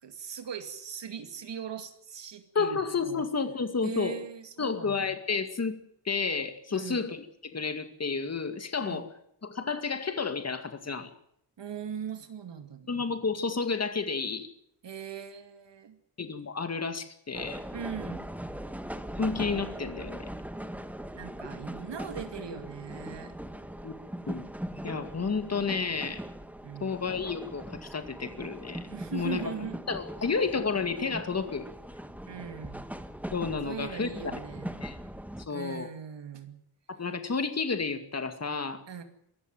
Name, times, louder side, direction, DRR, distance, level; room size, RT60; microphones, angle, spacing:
voice 1, 0.0-3.2 3.8-5.1 6.7-7.0 8.8-9.0 11.6-13.1 14.8-16.0 17.7-18.3 21.1-23.3 26.6-27.1 28.9-29.8 32.3-32.8 33.6-34.8 35.5-36.6 38.9-39.0, right 7 dB, 85° right, 7 dB, 2.6 m, -40 dB
voice 2, 2.5-4.2 4.6-5.8 6.1-9.1 9.4-11.1 12.9-14.5 16.2-17.6 19.2-20.3 23.8-23.9 24.3-24.5 24.8-26.2 26.8-28.8 29.1-29.5 29.9-31.7 33.3-34.1 34.8-35.0 35.5-35.9 36.9-38.8, left 5 dB, 35° left, 8 dB, 2.2 m, -31 dB
sound 1, 17.3-35.5, right 1 dB, 5° right, 1.1 m, -40 dB
23.5 x 14.0 x 9.2 m, 0.72 s
wide cardioid pair, 175°, 42 cm